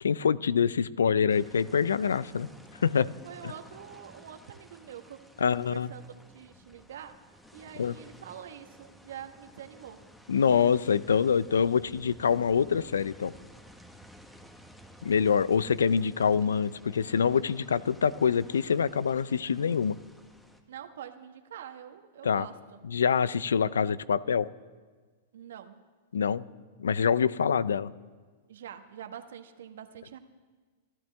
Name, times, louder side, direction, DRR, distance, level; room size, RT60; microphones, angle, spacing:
voice 1, 0.0-2.5 2.8-3.1 3.4-3.5 5.4-5.9 7.8-8.0 10.3-13.3 15.0-20.0 22.2-22.5 22.9-24.5 26.1-26.4 26.8-27.9, left 7 dB, 85° left, 20 dB, 0.5 m, -25 dB
sound 1, 1.3-20.6, equal, 5° left, 1.5 m, -54 dB
voice 2, 3.2-6.0 6.3-7.2 7.5-10.0 20.7-22.8 25.3-25.8 28.5-30.2, right 9 dB, 70° right, 7 dB, 1.3 m, -45 dB
25.5 x 13.0 x 3.5 m, 1.4 s
hypercardioid pair, 110°, 0 cm